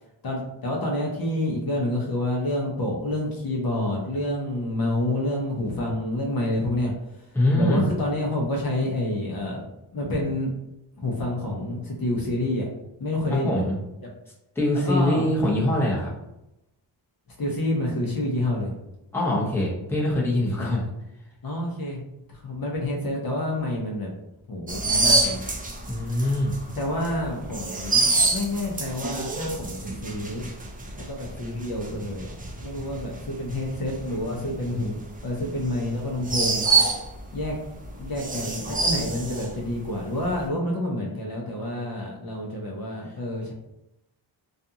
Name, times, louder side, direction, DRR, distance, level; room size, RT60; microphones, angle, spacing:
voice 1, 0.2-7.3 7.5-9.6 9.9-10.5 11.0-12.7 13.0-13.6 14.7-15.3 17.4-18.7 20.6-20.7 21.4-22.0 22.3-24.1 24.5-25.4 26.8-30.4 31.0-32.3 32.6-34.9 35.2-36.7 37.3-37.6 38.0-43.5, left 1 dB, 50° left, -2 dB, 0.7 m, -28 dB
voice 2, 7.3-7.9 13.3-13.8 14.6-16.1 19.1-20.8 25.9-26.5, left 1 dB, 5° left, -5 dB, 0.8 m, -23 dB
sound 1, 24.7-37.5 37.8-39.9 40.2-40.5, right 3 dB, 20° right, 0.4 m, -26 dB
2.5 x 2.4 x 2.7 m, 0.89 s
cardioid pair, 85°, 48 cm